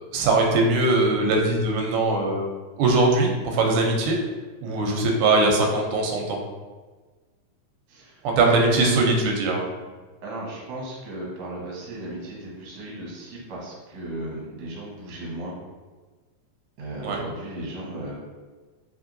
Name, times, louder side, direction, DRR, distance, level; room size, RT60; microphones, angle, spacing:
voice 1, 0.1-2.4 2.8-4.2 4.6-6.4 8.2-9.6 17.0-17.2, right 2 dB, 90° right, 1 dB, 2.1 m, -21 dB
voice 2, 7.9-8.2 8.5-9.1 10.2-15.5 16.8-18.1, right 2 dB, 60° right, -4 dB, 1.2 m, -34 dB
4.4 x 3.0 x 2.6 m, 1.3 s
omnidirectional pair, 3.4 m